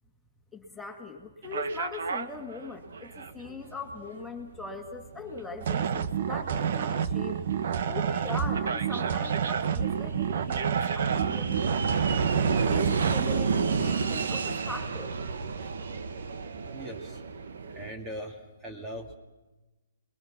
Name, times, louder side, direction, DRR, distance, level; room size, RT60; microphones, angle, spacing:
voice 1, 0.5-7.4 7.9-12.1 12.7-15.1, left 3 dB, 5° left, 1 dB, 2.3 m, -41 dB
sound 1, 1.4-17.9, right 5 dB, 70° right, 1.6 m, -32 dB
sound 2, 5.6-13.2, right 8 dB, 55° right, 1.2 m, -29 dB
voice 2, 16.4-17.2 17.7-19.1, equal, 15° right, 3 dB, 2.1 m, -41 dB
28.0 x 22.0 x 5.9 m, 1.1 s
hypercardioid pair, 150°, 0 cm